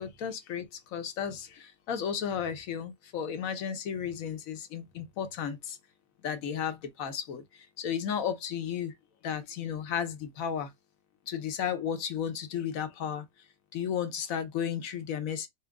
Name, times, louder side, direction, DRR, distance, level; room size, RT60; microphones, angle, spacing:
voice 1, 0.0-5.8 6.2-8.9 9.2-10.7 11.3-13.3 13.7-15.5, left 8 dB, 65° left, 1.1 m, -34 dB
4.4 x 2.1 x 3.5 m
omnidirectional pair, 1.7 m